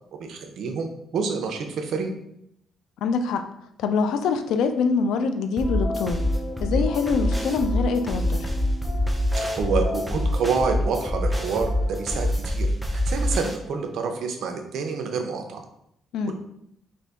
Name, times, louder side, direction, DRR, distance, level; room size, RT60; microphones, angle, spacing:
voice 1, 0.2-2.1 6.7-6.8 9.4-15.6 16.3-16.4, right 5 dB, 70° right, 4 dB, 0.5 m, -28 dB
voice 2, 3.0-3.4 3.8-6.2 6.6-8.5 16.1-16.3, left 5 dB, 85° left, 8 dB, 0.3 m, -24 dB
sound 1, 5.6-12.3, left 2 dB, 55° left, 1.2 m, -36 dB
sound 2, 5.6-13.6, left 1 dB, 5° right, 0.5 m, -25 dB
2.7 x 2.5 x 3.4 m, 0.75 s
cardioid pair, 90°, 0 cm